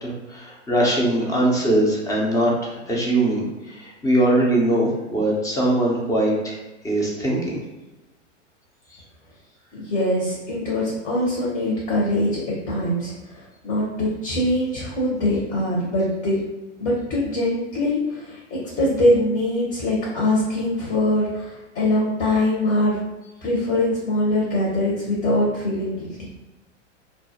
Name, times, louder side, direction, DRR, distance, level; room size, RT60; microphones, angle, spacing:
voice 1, 0.0-6.6 6.8-7.6, right 1 dB, 10° left, -3 dB, 0.4 m, -21 dB
voice 2, 9.7-16.4 16.8-23.0 23.4-26.3, left 1 dB, 35° left, -5 dB, 0.8 m, -23 dB
2.3 x 2.0 x 2.8 m, 1.1 s
hypercardioid pair, 110°, 37 cm